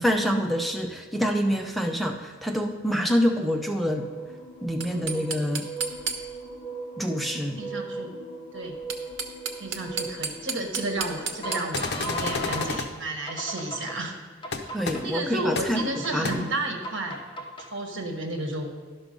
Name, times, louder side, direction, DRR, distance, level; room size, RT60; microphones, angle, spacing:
voice 1, 0.0-4.1 4.6-5.7 7.0-7.6 14.7-16.4, equal, ahead, 3 dB, 0.5 m, -26 dB
sound 1, 3.9-12.8 13.3-14.0 14.4-15.2 15.8-16.4 16.8-17.7, right 2 dB, 25° left, 1.1 m, -37 dB
sound 2, 4.7-6.6 8.7-12.3, right 5 dB, 85° right, 0.9 m, -33 dB
voice 2, 4.8-5.3 7.6-8.1 8.5-8.8 9.6-14.2 14.5-14.7 15.0-17.2 17.6-18.7, right 2 dB, 70° right, 3 dB, 1.4 m, -32 dB
sound 3, 11.7-12.9 14.5-14.6 14.9-15.0 15.6-15.7 16.2-16.3, left 4 dB, 60° left, 0.8 m, -30 dB
11.0 x 6.1 x 5.3 m, 1.5 s
head